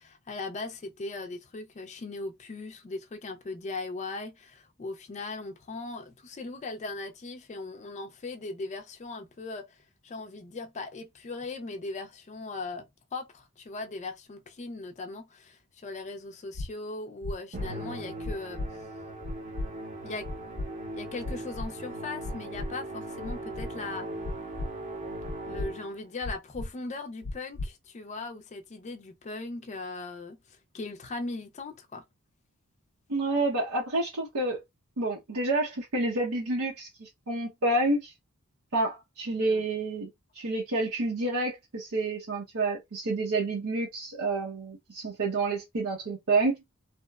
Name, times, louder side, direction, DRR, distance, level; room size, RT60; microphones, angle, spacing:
voice 1, 0.0-9.8 10.0-18.6 20.0-20.3 20.9-24.1 25.4-32.0 39.4-39.6, left 3 dB, 30° left, 0.4 m, -39 dB
sound 1, 16.5-16.7 17.2-17.7 18.2-18.7 19.2-19.7 20.2-20.7 21.2-21.7 22.2-22.7 23.2-23.7 24.2-24.7 25.2-25.7 26.2-26.7 27.2-27.7, left 2 dB, 85° left, 0.5 m, -34 dB
Musical instrument, 17.5-26.1, right 1 dB, 35° right, 0.7 m, -39 dB
voice 2, 33.1-34.6 35.0-38.1 38.7-40.1 40.3-46.5, right 2 dB, 80° right, 0.8 m, -29 dB
2.8 x 2.0 x 2.3 m
head